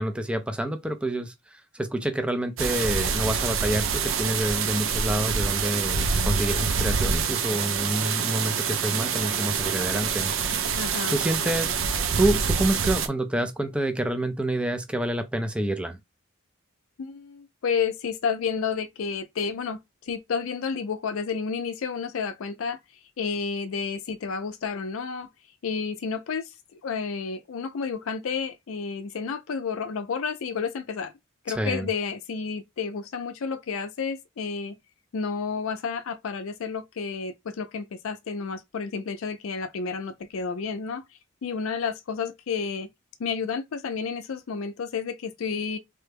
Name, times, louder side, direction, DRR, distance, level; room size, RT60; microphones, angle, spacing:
voice 1, 0.0-10.3 11.1-16.0 31.5-31.9, right 1 dB, 5° right, 0.4 m, -28 dB
sound 1, 2.6-13.1, right 6 dB, 75° right, 0.5 m, -26 dB
voice 2, 10.8-11.2 17.0-22.8 23.2-25.3 25.6-26.5 26.8-31.1 31.4-34.7 35.1-41.0 41.4-42.9 43.2-45.8, left 5 dB, 85° left, 0.4 m, -31 dB
3.3 x 2.1 x 3.3 m
head